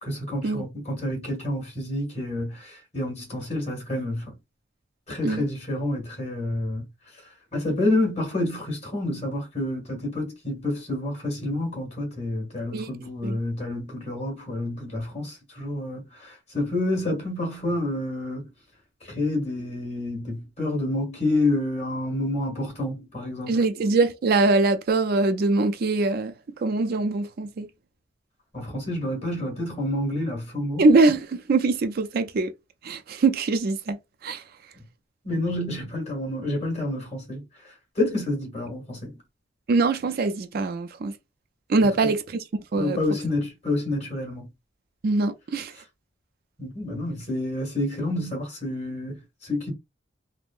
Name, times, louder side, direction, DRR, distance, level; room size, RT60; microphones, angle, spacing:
voice 1, 0.0-4.3 5.1-6.8 7.5-18.5 19.1-23.6 28.5-30.9 35.2-37.4 37.9-39.2 42.0-42.1 42.8-44.5 46.6-49.7, left 1 dB, 35° left, 1.6 m, -28 dB
voice 2, 23.5-26.3 26.6-27.7 30.8-32.5 32.8-34.0 34.2-34.4 39.7-41.1 41.7-42.4 42.7-43.0 45.0-45.7, right 3 dB, 50° right, 0.4 m, -22 dB
3.5 x 2.0 x 2.4 m
head